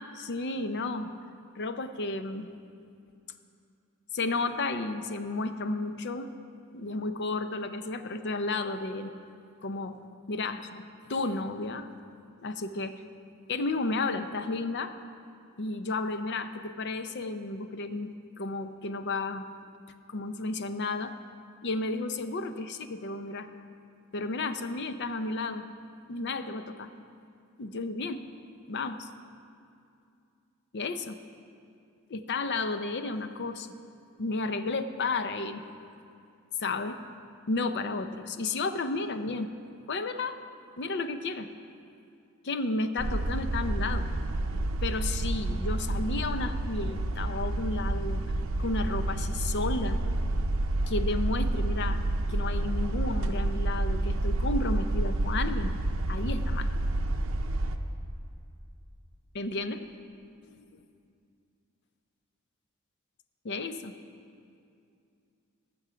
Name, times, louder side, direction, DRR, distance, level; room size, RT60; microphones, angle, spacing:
voice 1, 0.1-1.1 1.6-2.5 4.1-6.3 6.7-9.1 9.6-10.0 10.3-10.8 11.1-11.9 12.4-12.9 13.5-14.9 15.6-19.5 20.1-21.1 21.6-23.5 24.1-25.7 26.1-26.9 27.6-28.2 28.7-29.1 30.7-31.2 32.1-33.7 34.2-35.6 36.6-37.0 37.5-39.5 39.9-40.4 40.8-41.5 42.4-44.1 44.8-48.2 48.6-50.0 50.9-52.0 52.3-55.7 56.1-56.7 59.3-59.8 60.6-60.7 63.4-63.9, left 3 dB, 55° left, 9 dB, 0.6 m, -32 dB
sound 1, 43.0-57.8, right 1 dB, 65° right, 0.7 m, -29 dB
18.5 x 6.9 x 5.1 m, 2.5 s
head